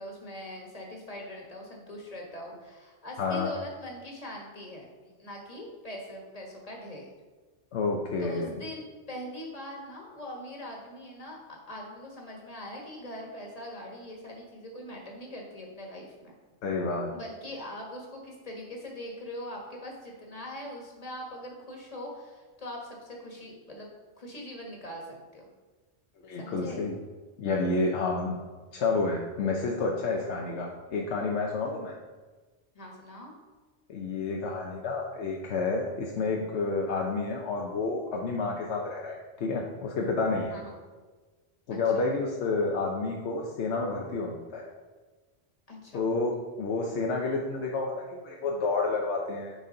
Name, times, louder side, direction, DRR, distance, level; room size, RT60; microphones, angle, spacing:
voice 1, 0.0-4.9 5.2-7.1 8.2-16.3 17.1-23.9 24.2-25.5 26.4-26.9 31.7-31.8 32.7-33.3 40.5-40.8 41.7-42.0 45.7-46.0, left 1 dB, 35° left, -1 dB, 1.5 m, -42 dB
voice 2, 3.2-3.5 7.7-8.6 16.6-17.1 26.2-27.0 27.4-28.4 28.7-32.0 33.9-40.6 41.7-44.7 45.9-49.5, left 3 dB, 85° left, 0 dB, 1.0 m, -30 dB
9.5 x 4.1 x 3.8 m, 1.3 s
omnidirectional pair, 1.1 m